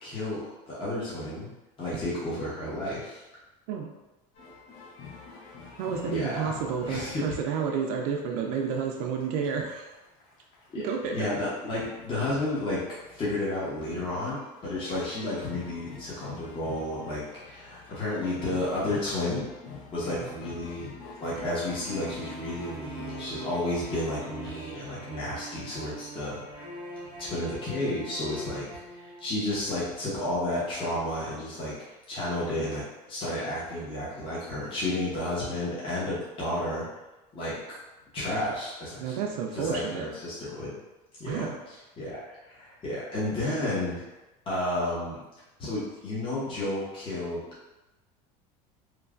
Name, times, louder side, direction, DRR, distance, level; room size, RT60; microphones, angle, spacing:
voice 1, 0.0-1.5 1.8-3.2 6.0-6.5 6.9-7.2 10.7-10.9 11.1-12.8 13.1-19.5 19.9-20.9 21.2-26.4 27.2-31.7 32.1-36.8 37.3-37.6 38.1-40.8 41.2-42.2 42.4-44.1 44.5-45.2 45.6-47.4, left 1 dB, 30° left, -8 dB, 0.9 m, -32 dB
sound 1, 4.3-7.5 8.0-8.2 8.4-23.5, left 5 dB, 70° left, 0.6 m, -47 dB
voice 2, 5.8-9.9 10.8-11.3 20.2-20.3 39.0-40.0 41.2-41.6, right 6 dB, 80° right, 1 dB, 0.4 m, -30 dB
sound 2, 21.8-29.6, right 1 dB, 5° right, 0.8 m, -43 dB
3.1 x 2.2 x 2.4 m, 1.0 s
supercardioid pair, 115°, 19 cm